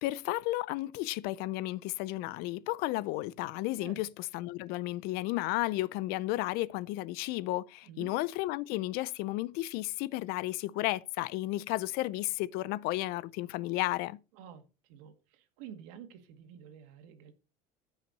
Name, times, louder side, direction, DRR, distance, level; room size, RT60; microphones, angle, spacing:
voice 1, 0.0-4.1 4.3-14.2, left 18 dB, 60° left, 0.5 m, -33 dB
voice 2, 3.8-4.1 7.8-8.1 14.3-17.3, right 9 dB, 80° right, 2.1 m, -50 dB
14.5 x 5.8 x 4.0 m
cardioid pair, 155°, 18 cm